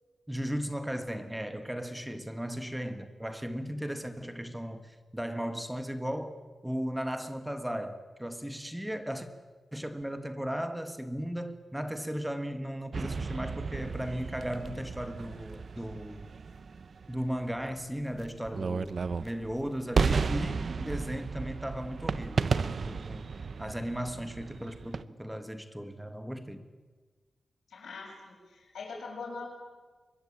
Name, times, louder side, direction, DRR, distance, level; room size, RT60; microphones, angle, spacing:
voice 1, 0.3-6.3 6.6-9.3 9.7-16.3 17.1-23.2 23.6-26.6, equal, 5° right, 1.5 m, -36 dB
sound 1, 12.9-25.0, right 5 dB, 50° right, 0.8 m, -34 dB
voice 2, 27.7-29.5, left 4 dB, 90° left, 7.8 m, -42 dB
24.5 x 22.0 x 8.7 m
wide cardioid pair, 145°, 0 cm